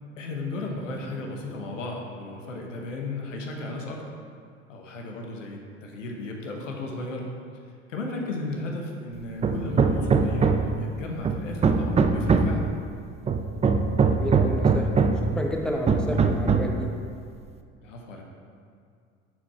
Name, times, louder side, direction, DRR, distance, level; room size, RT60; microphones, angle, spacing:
voice 1, 0.2-4.0 4.7-7.3 7.9-12.8 17.8-18.2, left 2 dB, 85° left, 0 dB, 1.1 m, -35 dB
Hammer, 9.4-10.8 11.2-12.6 13.3-15.3 15.9-16.8, right 4 dB, 20° right, 0.5 m, -21 dB
voice 2, 14.1-16.9, equal, ahead, 0 dB, 1.1 m, -31 dB
10.5 x 4.6 x 4.3 m, 2.3 s
hypercardioid pair, 70°, 37 cm